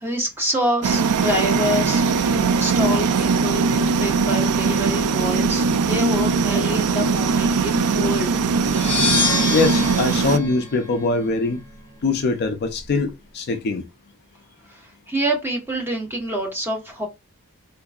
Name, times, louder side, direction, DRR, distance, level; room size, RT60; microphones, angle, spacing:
voice 1, 0.0-8.4 14.7-17.1, equal, 10° right, 0.9 m, -27 dB
sound 1, 0.8-10.4, right 5 dB, 75° right, 0.4 m, -20 dB
sound 2, 8.6-11.4, left 3 dB, 10° left, 1.6 m, -26 dB
voice 2, 9.5-11.6 12.0-13.8, left 3 dB, 50° left, 0.4 m, -22 dB
3.7 x 2.5 x 2.3 m
head